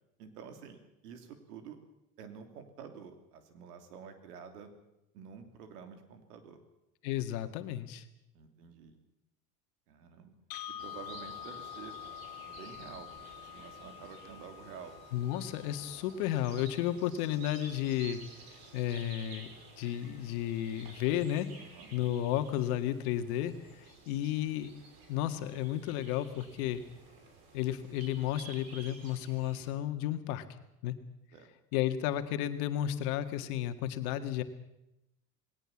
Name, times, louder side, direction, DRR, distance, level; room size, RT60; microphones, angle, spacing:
voice 1, 0.2-1.8 2.2-4.7 5.1-6.6 8.3-9.0 9.9-10.3 10.8-11.9 12.4-15.0 21.6-21.9 31.3-31.5, right 7 dB, 80° right, 7 dB, 3.3 m, -49 dB
voice 2, 7.0-8.0 15.1-18.2 18.7-19.5 19.8-21.5 21.9-24.7 25.1-26.8 27.5-30.4 30.8-30.9 31.7-34.4, left 12 dB, 70° left, 9 dB, 2.0 m, -33 dB
sound 1, 10.5-18.5, left 12 dB, 50° left, 2.2 m, -48 dB
sound 2, 10.8-29.7, right 3 dB, 50° right, 6.3 m, -53 dB
20.0 x 18.0 x 7.3 m, 0.88 s
hypercardioid pair, 90°, 46 cm